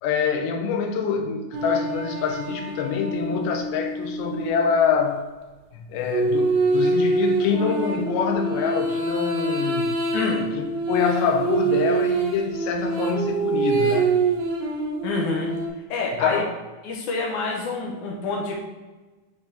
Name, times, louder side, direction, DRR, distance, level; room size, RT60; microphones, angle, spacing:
voice 1, 0.0-5.2 5.7-9.9 10.6-14.1 16.2-16.5, left 6 dB, 90° left, 5 dB, 2.6 m, -25 dB
sound 1, 1.5-5.0 6.1-15.7, right 3 dB, 80° right, 2.8 m, -25 dB
voice 2, 10.1-10.5 15.0-15.5 15.9-16.4 16.8-18.5, left 3 dB, 70° left, -1 dB, 2.0 m, -27 dB
10.0 x 3.5 x 3.4 m, 1.2 s
omnidirectional pair, 4.4 m